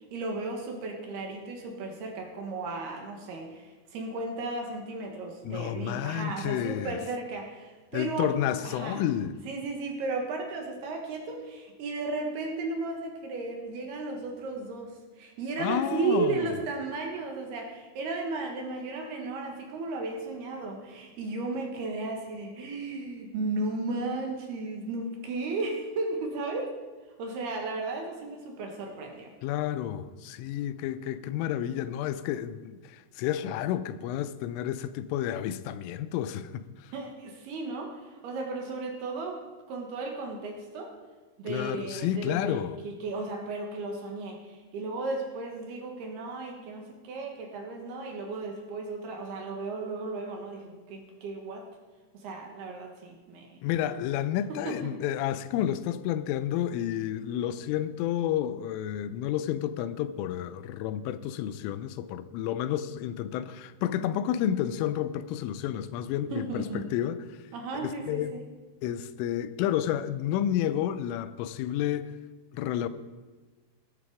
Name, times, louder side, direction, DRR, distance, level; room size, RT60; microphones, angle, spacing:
voice 1, 0.1-8.3 8.6-9.0 9.5-26.7 27.2-29.3 36.9-39.4 39.7-40.9 41.4-51.7 52.1-53.6 54.5-55.0 66.3-66.9 67.5-68.4, right 3 dB, 65° right, 3.2 m, -34 dB
voice 2, 5.4-7.0 7.9-9.4 15.6-16.5 29.4-36.9 41.5-42.8 53.6-67.4 67.8-68.3 68.8-72.2 72.5-72.9, left 11 dB, 85° left, 3.2 m, -30 dB
19.0 x 10.5 x 4.9 m
omnidirectional pair, 5.6 m